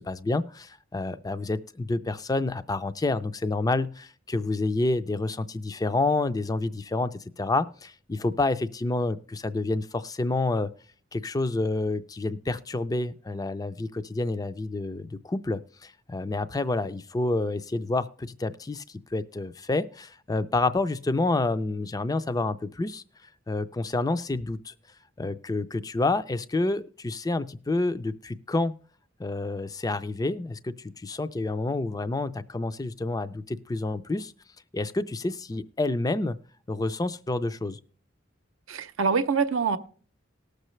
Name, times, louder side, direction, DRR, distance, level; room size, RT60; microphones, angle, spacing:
voice 1, 0.0-10.7 11.1-23.0 23.5-24.7 25.2-28.7 29.2-34.3 34.7-36.4 36.7-37.8, left 2 dB, 20° left, 0.4 m, -28 dB
voice 2, 38.7-39.8, right 5 dB, 80° right, 0.7 m, -25 dB
19.0 x 6.6 x 3.1 m
head